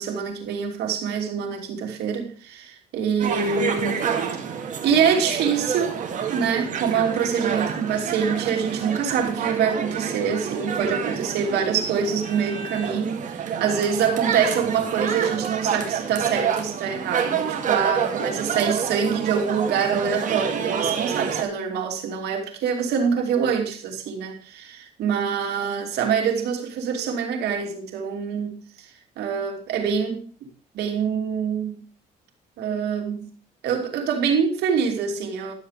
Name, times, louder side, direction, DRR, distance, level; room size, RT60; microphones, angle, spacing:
voice 1, 0.0-4.1 4.8-6.0 6.3-28.9 29.2-30.5 30.7-31.8 32.6-33.2 33.6-35.5, right 7 dB, 75° right, 2.9 m, -25 dB
sound 1, 3.2-21.4, right 7 dB, 50° right, 2.1 m, -28 dB
12.0 x 7.4 x 5.0 m
cardioid pair, 110°, 17 cm